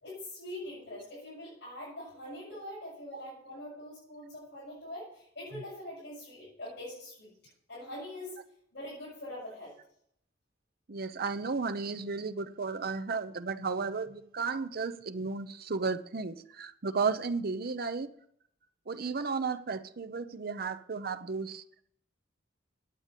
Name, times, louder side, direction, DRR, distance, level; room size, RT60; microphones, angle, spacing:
voice 1, 0.0-7.3 7.7-8.4 8.7-9.8, left 1 dB, 65° left, 7.3 m, -43 dB
voice 2, 10.9-18.1 18.9-21.6, right 4 dB, 55° right, 0.7 m, -34 dB
9.9 x 8.9 x 8.2 m
head